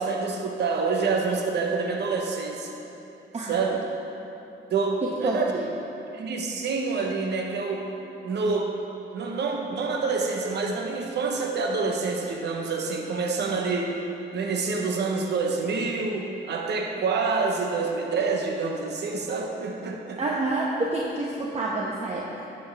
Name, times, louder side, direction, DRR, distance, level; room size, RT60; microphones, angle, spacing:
voice 1, 0.0-2.8 3.4-3.8 4.7-5.5 6.1-7.8 8.2-8.7 9.1-13.9 14.3-20.2, right 4 dB, 60° right, 1 dB, 1.1 m, -27 dB
voice 2, 3.3-3.8 5.0-5.6 20.2-22.4, right 2 dB, 35° right, -3 dB, 1.0 m, -28 dB
12.0 x 7.9 x 3.5 m, 3.0 s
cardioid pair, 90°, 20 cm